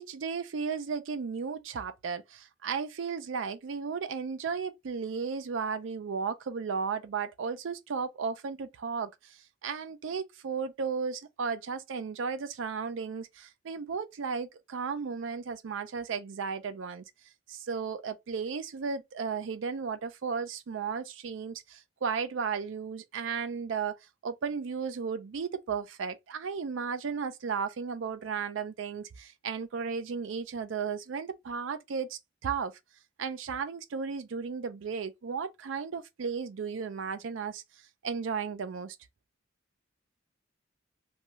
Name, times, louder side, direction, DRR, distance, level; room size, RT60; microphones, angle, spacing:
voice 1, 0.0-17.0 17.5-24.0 24.2-32.7 33.2-37.6 38.0-39.0, right 5 dB, 80° right, 0.4 m, -34 dB
2.6 x 2.3 x 3.0 m
head